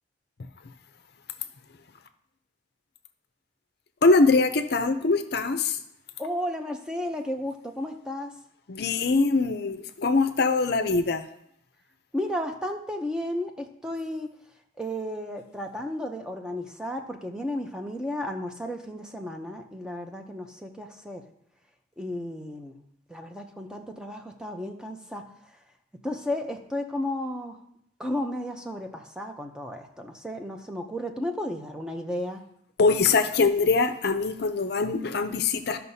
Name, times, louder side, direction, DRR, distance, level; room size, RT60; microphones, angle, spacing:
voice 1, 4.0-5.8 8.7-11.2 32.8-35.8, left 3 dB, 55° left, 9 dB, 0.5 m, -23 dB
voice 2, 6.2-8.4 12.1-14.3 14.8-21.2 22.0-22.8 23.1-25.2 26.0-27.6 28.0-32.4, left 1 dB, 5° right, 4 dB, 0.6 m, -33 dB
13.5 x 5.7 x 2.7 m, 0.74 s
head